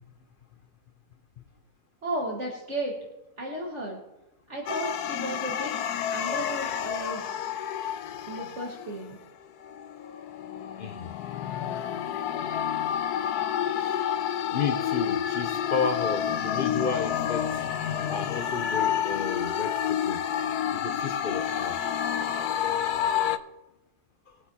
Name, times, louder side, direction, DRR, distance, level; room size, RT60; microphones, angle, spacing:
voice 1, 2.0-3.0 3.4-4.0 4.5-5.7 6.1-7.3 8.3-9.2, right 1 dB, 50° right, 1.9 m, -34 dB
sound 1, 4.7-9.0 9.6-23.4, left 9 dB, 90° left, 1.2 m, -29 dB
voice 2, 10.8-11.1 14.5-17.6 18.1-20.2 20.7-21.8, left 5 dB, 60° left, 0.5 m, -32 dB
22.0 x 8.2 x 2.8 m
omnidirectional pair, 1.6 m